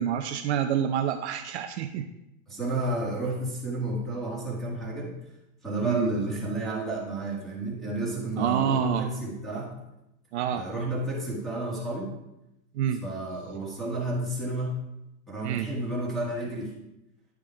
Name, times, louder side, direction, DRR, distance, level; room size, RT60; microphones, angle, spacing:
voice 1, 0.0-2.1 5.8-6.1 8.4-9.1 10.3-10.7 12.7-13.0 15.4-15.7, right 9 dB, 55° right, 6 dB, 0.6 m, -27 dB
voice 2, 2.5-5.1 5.6-9.7 10.5-12.1 13.0-14.7 15.3-16.7, right 2 dB, ahead, -5 dB, 1.9 m, -31 dB
10.5 x 5.4 x 4.6 m, 0.89 s
supercardioid pair, 165°, 41 cm